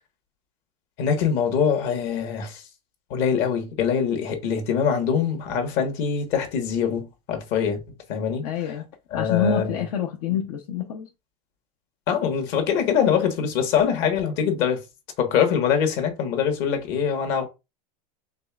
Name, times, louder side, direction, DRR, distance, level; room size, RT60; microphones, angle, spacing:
voice 1, 1.0-2.6 3.1-7.8 8.1-8.7 9.1-9.8 10.3-10.4 12.1-14.8 15.2-17.5, left 7 dB, 55° left, 1.5 m, -23 dB
voice 2, 8.4-8.8 9.1-11.1, left 7 dB, 75° left, 0.8 m, -26 dB
5.3 x 3.3 x 2.4 m
supercardioid pair, 120°, 20 cm